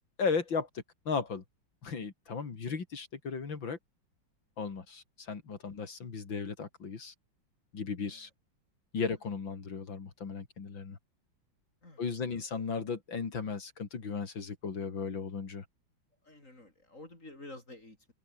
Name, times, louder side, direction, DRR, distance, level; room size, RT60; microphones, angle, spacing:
voice 1, 0.2-0.7 1.0-1.4 1.8-3.8 4.6-7.1 7.7-8.3 8.9-11.0 12.0-15.6, left 5 dB, 70° left, 3.5 m, -36 dB
voice 2, 11.8-12.4 16.2-18.1, left 2 dB, 40° left, 6.8 m, -51 dB
omnidirectional pair, 2.2 m